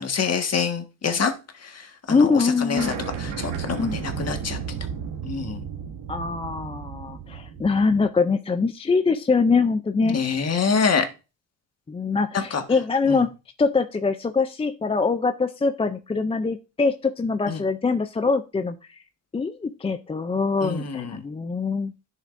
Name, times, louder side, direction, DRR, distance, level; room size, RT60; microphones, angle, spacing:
voice 1, 0.0-1.3 1.6-4.6 5.2-5.6 10.1-11.1 12.3-12.6 13.0-13.2 17.5-17.6 20.6-21.2, left 5 dB, 35° left, 6 dB, 1.5 m, -26 dB
voice 2, 2.1-3.0 3.8-4.0 6.1-10.2 11.9-13.3 13.6-19.0 19.3-21.9, left 4 dB, 15° left, 9 dB, 0.4 m, -23 dB
sound 1, 2.8-8.1, right 7 dB, 75° right, 1.9 m, -33 dB
10.5 x 6.6 x 2.5 m, 0.30 s
cardioid pair, 105°, 43 cm